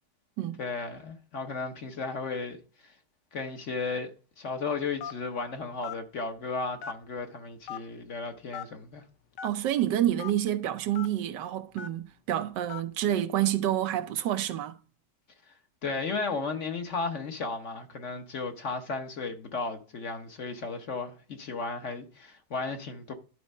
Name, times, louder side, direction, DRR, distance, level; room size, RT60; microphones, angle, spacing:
voice 1, 0.6-2.9 3.3-9.0 15.8-23.1, left 4 dB, 50° left, 1.1 m, -34 dB
Telephone, 5.0-5.3 5.8-6.0 6.8-7.2 7.7-7.8 8.5-8.7 9.4-9.5 10.2-10.3 11.0-11.1 11.8-12.0 12.7-12.9, left 8 dB, 90° left, 1.4 m, -38 dB
voice 2, 9.4-14.8, right 11 dB, 90° right, 1.3 m, -28 dB
11.5 x 4.1 x 5.3 m
omnidirectional pair, 1.8 m